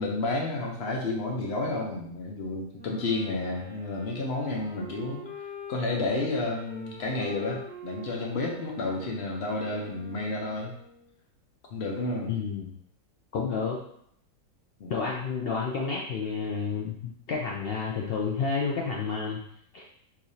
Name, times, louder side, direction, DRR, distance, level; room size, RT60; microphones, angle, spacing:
voice 1, 0.0-5.2 5.7-10.7 11.7-12.3 14.8-14.9, left 2 dB, 50° left, 0 dB, 0.9 m, -31 dB
Wind instrument woodwind instrument, 2.7-11.1, left 1 dB, 5° right, 1.0 m, -45 dB
voice 2, 12.3-12.7 13.3-13.8 14.9-19.4 19.7-19.8, left 5 dB, 85° left, -3 dB, 0.5 m, -30 dB
4.6 x 3.1 x 2.7 m, 0.69 s
omnidirectional pair, 1.7 m